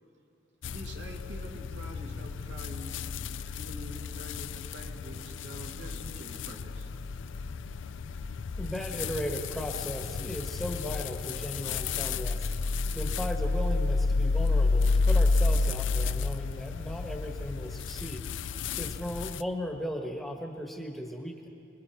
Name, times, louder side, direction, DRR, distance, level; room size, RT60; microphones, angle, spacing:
sound 1, 0.6-19.4, left 3 dB, 80° left, 0.5 m, -31 dB
voice 1, 0.7-3.0 3.4-6.9, equal, 70° right, 1 dB, 2.5 m, -46 dB
voice 2, 8.6-12.5 12.9-18.2 18.8-21.5, equal, ahead, 1 dB, 1.3 m, -36 dB
28.5 x 21.5 x 4.6 m, 2.8 s
head